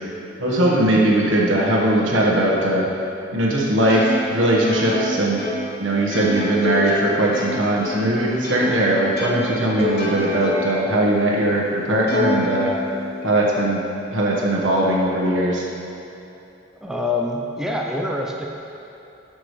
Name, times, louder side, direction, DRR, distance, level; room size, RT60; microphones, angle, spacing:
voice 1, 0.4-2.8 3.3-5.4 5.8-12.7 13.2-13.8 14.1-15.7, right 1 dB, 75° right, -3 dB, 1.4 m, -19 dB
Plucked string instrument, 3.9-8.8 9.2-10.9 11.3-11.4 12.1-13.2, left 2 dB, 50° left, 1.2 m, -27 dB
voice 2, 16.8-18.5, left 2 dB, 5° right, -1 dB, 0.5 m, -25 dB
11.5 x 6.2 x 3.2 m, 2.9 s
head